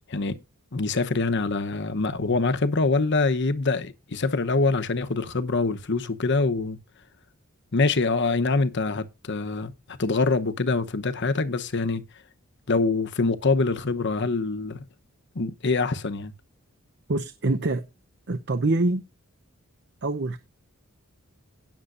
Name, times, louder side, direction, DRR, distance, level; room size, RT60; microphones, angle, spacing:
voice 1, 0.7-6.8 7.7-9.7 10.0-12.0 12.7-14.8 15.3-16.3, left 3 dB, 55° left, 0.9 m, -24 dB
voice 2, 17.1-17.9 18.3-19.0 20.0-20.4, right 2 dB, 55° right, 0.8 m, -25 dB
18.0 x 7.1 x 2.6 m
head